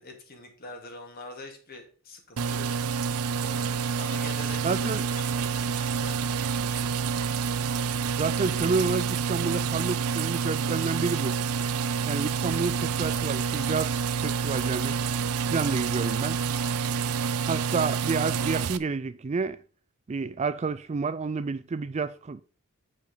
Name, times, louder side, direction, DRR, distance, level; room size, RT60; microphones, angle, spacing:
voice 1, 0.0-2.7 3.4-7.0, left 2 dB, 45° left, 2.2 m, -45 dB
sound 1, 2.4-18.8, right 6 dB, 85° right, 0.6 m, -28 dB
voice 2, 4.6-5.0 8.2-11.4 12.1-13.9 14.2-15.0 15.5-16.4 17.5-19.6 20.1-22.4, right 4 dB, 30° right, 0.3 m, -29 dB
9.0 x 5.1 x 4.9 m
head